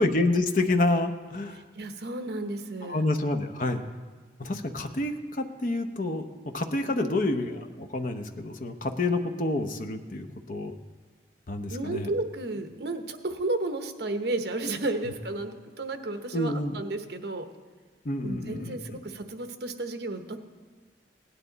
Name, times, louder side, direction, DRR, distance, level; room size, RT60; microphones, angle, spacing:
voice 1, 0.0-1.6 2.8-3.8 4.4-6.3 6.5-10.8 11.5-12.1 16.3-16.8 18.0-18.8, left 2 dB, 50° left, 6 dB, 0.8 m, -28 dB
voice 2, 1.5-3.0 6.9-7.3 11.7-17.4 18.2-20.5, right 2 dB, 70° right, 7 dB, 1.0 m, -33 dB
17.5 x 9.9 x 4.0 m, 1.5 s
head